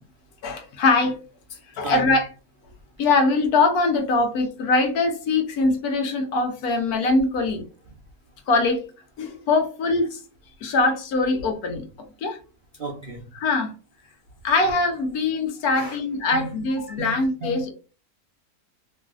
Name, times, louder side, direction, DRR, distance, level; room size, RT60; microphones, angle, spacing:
voice 1, 0.4-1.2 1.8-2.3 3.0-7.7 8.5-8.8 9.2-10.2 10.6-11.8 12.2-12.4 13.4-13.7 14.4-17.7, left 3 dB, 70° left, 1.2 m, -22 dB
voice 2, 12.8-13.3 15.8-16.0 16.3-17.7, right 2 dB, 80° right, 0.4 m, -34 dB
3.1 x 2.6 x 2.4 m
omnidirectional pair, 1.7 m